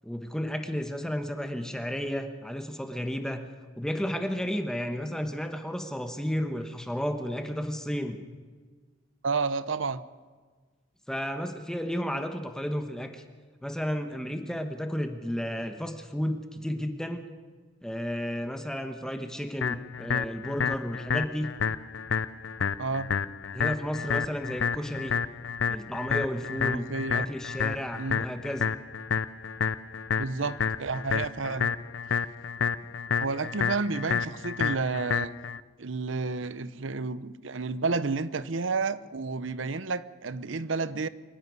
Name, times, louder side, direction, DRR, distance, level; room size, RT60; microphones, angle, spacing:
voice 1, 0.0-3.5 3.8-8.2 11.1-13.2 13.6-17.2 17.8-21.5 23.5-25.2 25.7-28.7, equal, 5° left, 7 dB, 1.1 m, -32 dB
voice 2, 9.2-10.0 22.8-23.1 26.6-27.3 28.0-28.2 30.2-31.7 33.2-35.3 35.8-41.1, right 4 dB, 80° right, 16 dB, 0.8 m, -31 dB
sound 1, 19.6-35.6, left 6 dB, 70° left, 0.5 m, -30 dB
24.5 x 11.0 x 9.5 m, 1.4 s
head